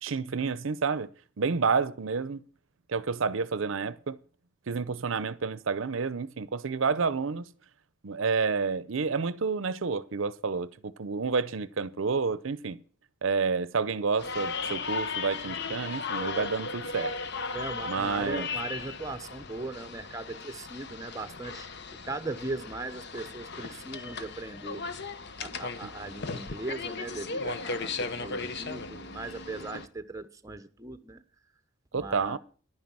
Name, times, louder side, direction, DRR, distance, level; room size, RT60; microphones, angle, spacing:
voice 1, 0.0-1.1 1.4-2.4 2.9-4.2 4.7-7.5 8.0-12.8 13.2-17.1 17.9-18.5 31.9-32.4, right 5 dB, 65° right, 0.6 m, -29 dB
sound 1, 14.2-29.9, left 4 dB, 55° left, 1.0 m, -36 dB
voice 2, 17.5-21.7 22.0-24.8 25.4-31.2 31.9-32.4, right 2 dB, 15° right, 0.8 m, -38 dB
11.0 x 9.5 x 6.0 m
head